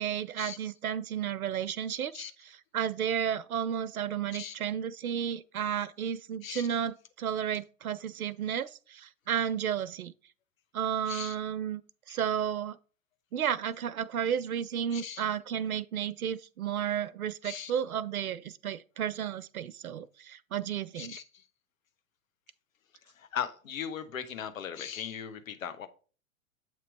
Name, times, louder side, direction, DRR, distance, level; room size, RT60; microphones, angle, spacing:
voice 1, 0.0-2.2 2.7-10.1 10.7-11.8 12.1-12.8 13.3-21.2, right 9 dB, 85° right, 0.6 m, -32 dB
voice 2, 6.4-6.8 11.1-11.4 12.1-12.2 14.9-15.2 17.4-17.7 21.0-21.4 23.1-25.9, left 8 dB, 70° left, 1.0 m, -38 dB
7.6 x 3.0 x 4.6 m
figure-of-eight pair, 105°, 42 cm